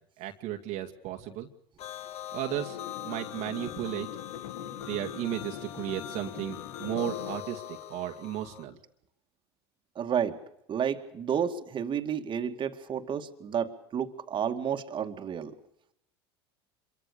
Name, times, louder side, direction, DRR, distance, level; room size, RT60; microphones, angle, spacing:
voice 1, 0.2-1.5 2.3-2.8 3.0-4.1 4.9-8.8, right 12 dB, 55° right, 3 dB, 2.2 m, -34 dB
sound 1, 1.8-8.6, left 12 dB, 50° left, 1.6 m, -42 dB
sound 2, 2.3-7.4, left 10 dB, 70° left, 2.0 m, -42 dB
voice 2, 10.0-10.4 10.7-15.5, right 8 dB, 35° right, 5 dB, 2.3 m, -31 dB
26.5 x 23.5 x 6.9 m, 0.77 s
hypercardioid pair, 90°, 14 cm